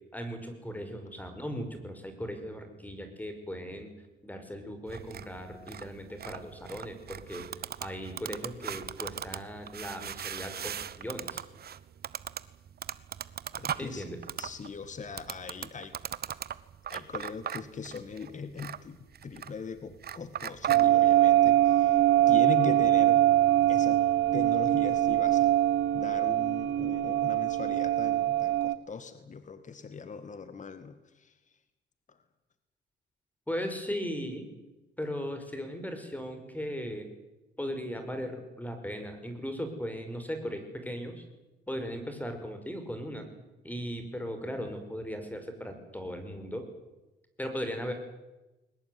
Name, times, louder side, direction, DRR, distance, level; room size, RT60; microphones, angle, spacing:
voice 1, 0.1-3.9 4.2-7.5 7.8-11.4 13.8-14.2 33.5-34.5 35.0-37.1 37.6-41.2 41.7-43.2 43.6-46.7 47.4-47.9, equal, 10° left, 7 dB, 5.6 m, -37 dB
sound 1, 4.9-20.9, right 9 dB, 50° right, 1.1 m, -40 dB
voice 2, 13.6-14.1 14.4-16.0 16.9-19.0 19.2-23.2 23.7-24.0 24.3-25.5 25.9-31.3 32.1-32.2, left 5 dB, 40° left, 11 dB, 2.0 m, -40 dB
sound 2, 20.7-28.8, right 13 dB, 80° right, 1.1 m, -23 dB
22.5 x 19.0 x 9.6 m, 1.0 s
cardioid pair, 90°, 20 cm